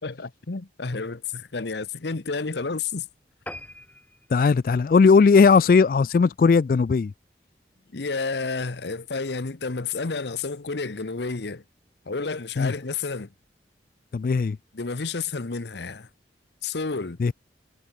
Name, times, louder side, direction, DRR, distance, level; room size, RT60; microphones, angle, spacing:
voice 1, 0.0-3.1 7.9-11.6 12.1-13.3 14.7-16.1 16.6-17.2, left 4 dB, 75° left, 0.9 m, -30 dB
sound 1, 3.5-6.2 6.7-6.9 7.3-7.4 7.7-7.8 8.1-8.2, left 1 dB, 10° left, 1.0 m, -44 dB
voice 2, 4.3-7.1 12.6-12.7 14.1-14.6 17.2-17.3, left 5 dB, 50° left, 0.3 m, -18 dB
head